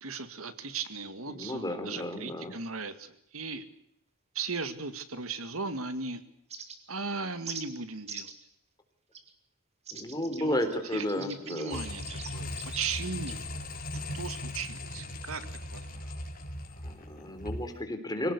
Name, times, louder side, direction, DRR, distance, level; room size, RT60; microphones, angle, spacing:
voice 1, 0.0-3.6 4.3-6.2 6.9-8.3 10.4-10.6 10.9-13.4 14.1-15.5 15.7-15.9, right 4 dB, 75° right, 11 dB, 2.1 m, -37 dB
voice 2, 1.3-2.6 9.9-11.8 15.9-16.1 16.8-18.3, left 1 dB, 20° left, 7 dB, 3.8 m, -33 dB
sound 1, 6.5-7.0 7.5-7.6 8.1-8.4 9.1-9.3 9.9-13.4, right 5 dB, 30° right, 2.8 m, -43 dB
sound 2, 11.7-17.7, left 1 dB, 45° left, 4.1 m, -38 dB
25.0 x 18.0 x 8.2 m, 0.74 s
head